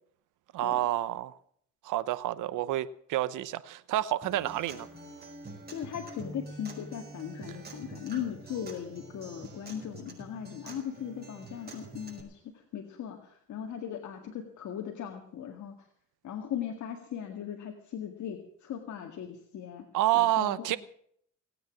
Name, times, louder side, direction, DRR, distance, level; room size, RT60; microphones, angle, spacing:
voice 1, 0.5-1.4 1.8-4.9 19.9-20.8, right 14 dB, 85° right, 0.9 m, -29 dB
Acoustic guitar, 4.2-12.2, right 2 dB, 30° right, 5.9 m, -46 dB
voice 2, 5.7-15.7 16.2-19.9 20.1-20.8, left 9 dB, 75° left, 1.9 m, -38 dB
19.0 x 9.3 x 7.3 m
cardioid pair, 90°, 30 cm